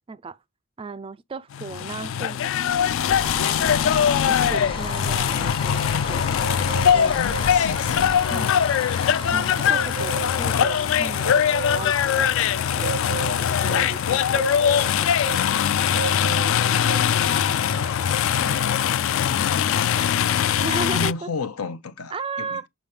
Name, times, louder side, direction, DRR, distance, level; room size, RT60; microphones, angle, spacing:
voice 1, 0.8-2.9 3.4-3.9 4.3-6.2 6.9-7.2 8.2-8.6 9.3-11.4 11.7-14.4 14.8-15.8 20.6-21.3 22.1-22.7, right 4 dB, 25° right, 0.3 m, -36 dB
sound 1, 1.5-21.1, left 8 dB, 60° left, 0.3 m, -22 dB
sound 2, 2.7-13.2, left 2 dB, 25° left, 0.6 m, -35 dB
Bird, 4.8-19.5, right 6 dB, 85° right, 0.4 m, -36 dB
voice 2, 6.9-8.4 13.6-14.3 19.2-20.5 20.8-22.7, left 4 dB, 90° left, 0.9 m, -36 dB
7.1 x 5.4 x 3.3 m
head